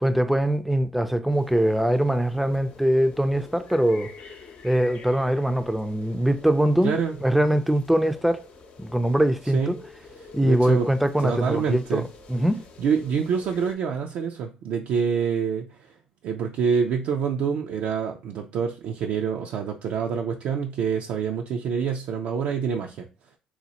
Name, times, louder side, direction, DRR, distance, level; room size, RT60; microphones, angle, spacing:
voice 1, 0.0-4.1 4.6-7.0 7.2-8.5 8.8-9.8 10.3-12.6, right 1 dB, 5° right, 0.4 m, -22 dB
sound 1, 1.3-13.7, left 4 dB, 60° left, 0.6 m, -47 dB
voice 2, 6.8-7.2 9.5-9.7 10.2-10.9 11.2-12.1 12.8-15.8 16.2-23.1, right 6 dB, 70° right, 0.4 m, -26 dB
4.2 x 2.2 x 2.8 m
hypercardioid pair, 60°, 3 cm